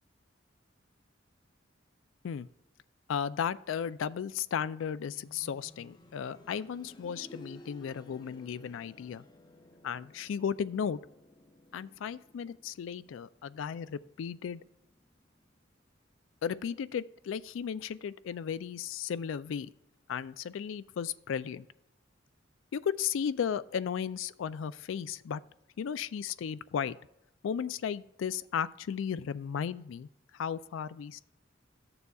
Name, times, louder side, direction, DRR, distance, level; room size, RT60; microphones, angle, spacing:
voice 1, 3.1-9.2 9.8-11.0 11.7-14.6 16.4-19.7 20.1-21.7 22.7-25.4 25.8-27.0 27.4-30.1 30.3-31.2, left 7 dB, 70° left, 16 dB, 0.3 m, -35 dB
sound 1, 5.2-15.9 16.3-16.4 17.3-17.4, left 1 dB, 20° left, 0.6 m, -56 dB
13.5 x 6.9 x 2.3 m, 0.83 s
head